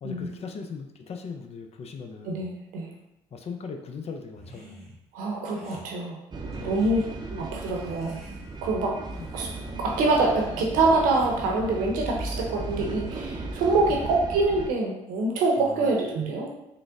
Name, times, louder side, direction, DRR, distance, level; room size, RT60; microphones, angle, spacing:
voice 1, 0.0-2.4 3.3-4.9 6.6-6.8 9.2-9.3 13.9-14.0 15.6-16.0, left 5 dB, 50° left, 5 dB, 0.5 m, -39 dB
voice 2, 2.2-2.9 5.1-6.2 6.6-7.0 7.3-8.2 8.6-8.9 9.3-9.5 9.8-16.5, right 3 dB, 80° right, -1 dB, 0.8 m, -25 dB
sound 1, 4.3-5.0 5.5-5.9 6.5-7.1 7.7-8.7 9.1-9.5 10.1-10.4 11.1-11.7, equal, ahead, 1.3 m, -48 dB
sound 2, 6.3-14.7, right 3 dB, 30° right, 0.6 m, -36 dB
3.8 x 2.1 x 3.5 m, 0.87 s
supercardioid pair, 60°, 14 cm